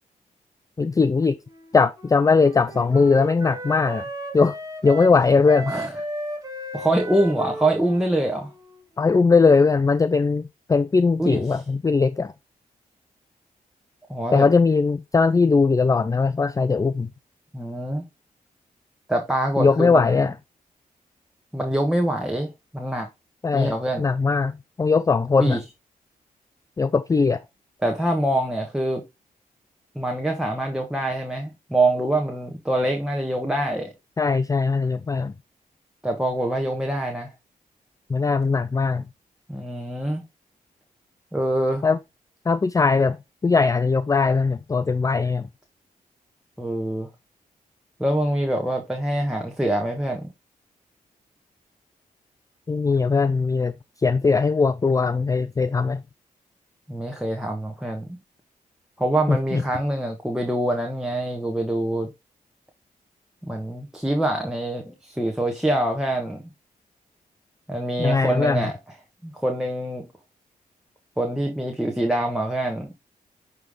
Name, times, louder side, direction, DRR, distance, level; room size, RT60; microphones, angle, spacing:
voice 1, 0.8-1.4 1.7-4.1 4.3-4.6 4.8-5.7 9.0-12.3 14.3-17.1 19.6-20.3 23.4-25.6 26.8-27.4 34.2-35.3 38.1-39.0 41.8-42.0 42.5-43.2 43.4-45.5 52.7-53.7 54.0-56.0 59.3-59.6 68.0-68.7, left 4 dB, 20° left, 0.4 m, -20 dB
Wind instrument woodwind instrument, 1.4-9.4, right 1 dB, 20° right, 2.5 m, -35 dB
voice 2, 6.7-8.5 11.2-11.4 14.1-14.4 17.5-18.0 19.1-20.2 21.5-23.1 23.5-24.0 25.4-25.6 27.8-29.0 29.9-33.9 36.0-37.3 39.5-40.2 41.3-41.8 46.6-47.1 48.0-50.3 56.9-58.1 59.0-62.1 63.4-66.4 67.7-68.7 69.2-70.1 71.2-72.9, right 1 dB, 5° right, 1.5 m, -25 dB
9.2 x 3.4 x 3.7 m
cardioid pair, 60°, 15 cm